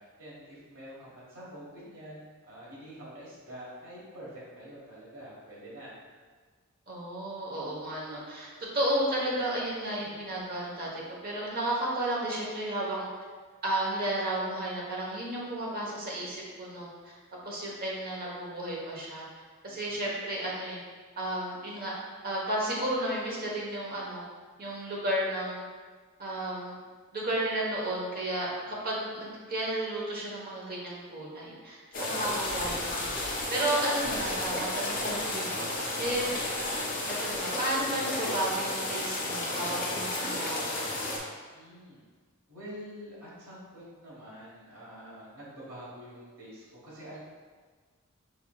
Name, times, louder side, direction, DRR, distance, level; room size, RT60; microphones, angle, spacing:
voice 1, 0.0-5.9 9.9-10.2 19.7-20.0 28.5-28.8 41.5-42.0 42.5-47.2, equal, 85° right, -7 dB, 1.3 m, -47 dB
voice 2, 6.9-10.9 11.2-13.1 13.6-17.1 17.4-19.2 19.6-20.8 21.2-21.9 22.2-24.2 24.6-25.6 26.2-26.8 27.1-36.2 37.2-40.8, right 1 dB, 45° right, -4 dB, 1.0 m, -33 dB
sound 1, 31.9-41.2, left 2 dB, 40° left, 0.9 m, -32 dB
5.6 x 3.4 x 2.3 m, 1.5 s
head